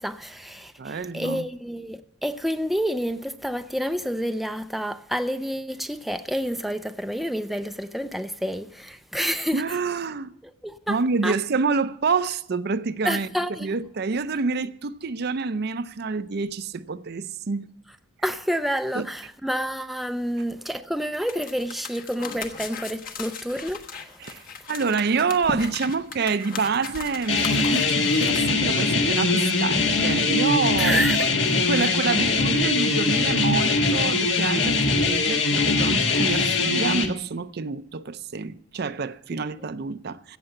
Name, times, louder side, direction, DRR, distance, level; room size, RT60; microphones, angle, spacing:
voice 1, 0.0-9.6 10.6-11.0 11.2-11.3 13.0-13.7 18.2-23.8 30.8-31.3 39.6-39.7, equal, ahead, 0.4 m, -29 dB
voice 2, 0.8-1.5 9.5-10.3 10.9-13.3 13.6-17.7 18.9-19.1 24.2-24.4 24.7-31.4 31.6-40.4, right 4 dB, 55° right, 0.5 m, -27 dB
sound 1, 21.3-28.4, left 5 dB, 45° left, 1.2 m, -37 dB
sound 2, 27.3-37.1, left 3 dB, 70° left, 1.6 m, -22 dB
16.5 x 6.8 x 7.8 m
head